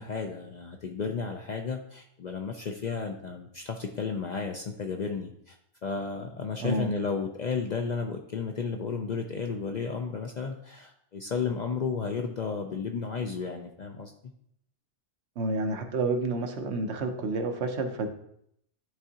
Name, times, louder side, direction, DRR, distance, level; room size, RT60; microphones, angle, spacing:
voice 1, 0.0-5.6 5.8-14.1, left 5 dB, 55° left, 3 dB, 0.5 m, -33 dB
voice 2, 6.6-6.9 15.4-18.1, right 2 dB, 70° right, 5 dB, 1.1 m, -29 dB
10.5 x 3.6 x 2.8 m, 0.72 s
omnidirectional pair, 1.2 m